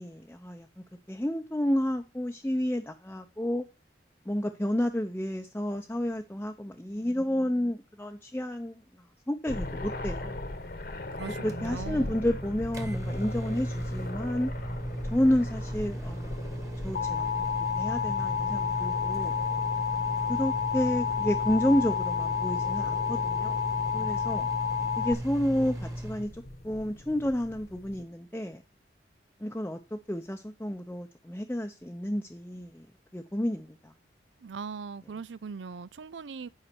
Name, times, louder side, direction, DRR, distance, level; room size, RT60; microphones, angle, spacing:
voice 1, 0.0-3.6 4.3-8.8 9.3-10.4 11.4-14.5 15.1-17.2 17.8-19.4 20.3-23.6 23.9-24.5 25.0-28.6 29.4-32.9 33.1-33.9, left 1 dB, 10° left, 0.6 m, -30 dB
sound 1, 9.5-28.0, left 1 dB, 55° left, 1.2 m, -40 dB
voice 2, 11.1-12.2 34.4-36.5, right 5 dB, 85° right, 0.5 m, -40 dB
Microwave oven, 11.2-26.3, right 1 dB, 15° right, 1.3 m, -37 dB
Alarm, 16.9-25.1, left 7 dB, 75° left, 0.6 m, -30 dB
9.0 x 5.5 x 5.9 m
head